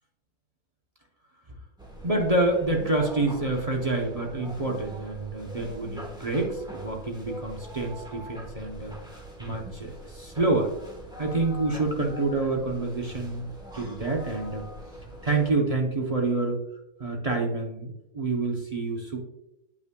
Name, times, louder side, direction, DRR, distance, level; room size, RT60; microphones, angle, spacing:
sound 1, 1.8-15.5, equal, 5° right, 1.0 m, -42 dB
voice 1, 2.0-8.9 9.4-10.7 11.2-14.7 15.2-16.6 17.0-19.2, right 2 dB, 35° right, 0 dB, 0.6 m, -27 dB
9.2 x 5.5 x 2.2 m, 0.86 s
omnidirectional pair, 1.7 m